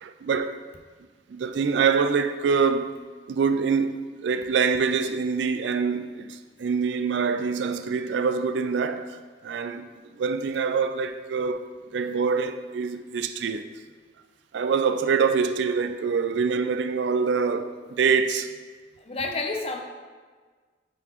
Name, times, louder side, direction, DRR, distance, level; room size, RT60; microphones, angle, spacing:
voice 1, 0.0-0.6 1.3-3.0 3.3-9.1 9.4-9.9 10.2-11.7 11.9-13.6 14.5-18.5, right 5 dB, 75° right, 0.3 m, -25 dB
voice 2, 19.0-19.8, left 3 dB, 35° left, 0.5 m, -30 dB
8.9 x 3.9 x 3.0 m
head